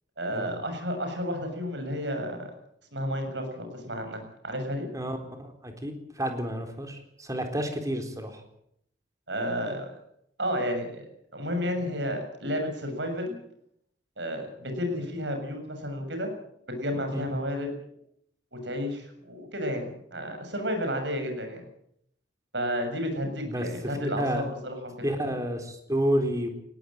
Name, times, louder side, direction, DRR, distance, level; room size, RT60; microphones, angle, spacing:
voice 1, 0.2-2.5 2.9-4.9 9.3-10.0 10.4-11.1 11.3-13.4 14.2-16.3 16.7-17.7 18.5-21.7 22.5-25.1, equal, 75° right, 5 dB, 7.0 m, -32 dB
voice 2, 4.9-8.4 17.1-17.3 23.4-23.7 24.0-24.4 25.0-26.5, equal, 20° right, 5 dB, 3.9 m, -30 dB
19.5 x 18.0 x 9.0 m, 0.74 s
head